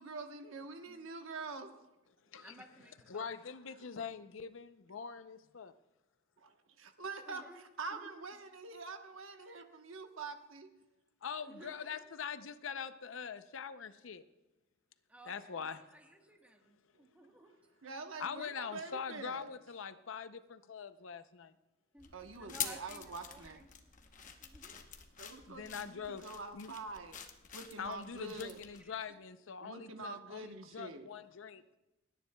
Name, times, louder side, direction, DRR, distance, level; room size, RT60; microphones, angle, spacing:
voice 1, 0.0-1.7 2.3-2.4 3.8-3.9 6.4-7.4 7.8-10.7 11.6-11.7 16.9-17.0 17.8-19.5 22.1-23.6 25.2-27.2 27.5-28.6 29.6-31.1, right 3 dB, 75° right, 6 dB, 1.1 m, -45 dB
voice 2, 2.4-3.4 7.3-7.6 7.9-8.1 9.4-9.6 11.4-12.0 15.1-17.5 21.9-23.7 24.4-24.8 28.8-29.2, equal, 5° right, 2 dB, 1.3 m, -57 dB
voice 3, 3.1-5.7 11.2-14.2 15.3-15.8 18.2-21.5 25.5-26.2 26.5-26.8 27.8-31.6, left 6 dB, 70° left, 12 dB, 0.6 m, -43 dB
sound 1, 22.0-28.9, left 8 dB, 40° left, 0.9 m, -47 dB
29.0 x 10.0 x 2.3 m, 0.99 s
head